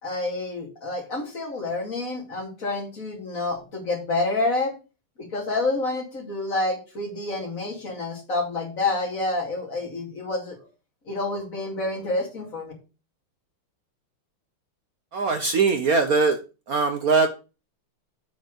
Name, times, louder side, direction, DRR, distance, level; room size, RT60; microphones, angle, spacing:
voice 1, 0.0-4.7 5.2-10.6 11.1-12.7, left 2 dB, 40° left, 0 dB, 2.9 m, -28 dB
voice 2, 15.1-16.4 16.7-17.3, right 4 dB, 65° right, 7 dB, 0.9 m, -21 dB
8.2 x 4.4 x 6.5 m, 0.32 s
omnidirectional pair, 2.4 m